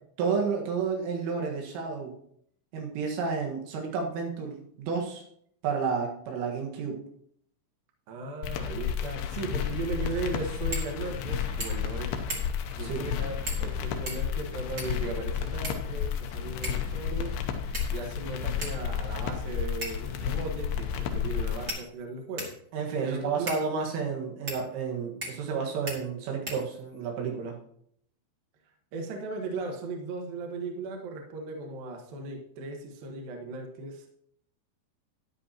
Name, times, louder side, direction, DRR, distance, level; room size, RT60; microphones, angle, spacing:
voice 1, 0.2-2.1 2.7-5.2 5.6-7.0 12.8-13.1 22.7-27.5, right 5 dB, 85° right, 0 dB, 4.2 m, -31 dB
voice 2, 8.1-12.1 12.8-22.5 23.0-23.5 28.9-34.1, right 3 dB, 60° right, 2 dB, 2.8 m, -37 dB
sound 1, 8.4-21.7, left 7 dB, 80° left, 2.3 m, -32 dB
sound 2, 10.7-10.9 11.2-11.3 11.6-11.9 12.3-12.7 13.5-13.7 14.1-15.1 15.6-16.2 16.6-16.9 17.7-18.2 18.6-18.8 19.8-20.1 20.9-21.0 21.7-22.6 23.5-23.6 24.5-24.6 25.2-25.5 25.9-26.0 26.5-27.0, right 1 dB, 35° right, 1.5 m, -38 dB
13.0 x 10.5 x 2.9 m, 0.68 s
omnidirectional pair, 5.6 m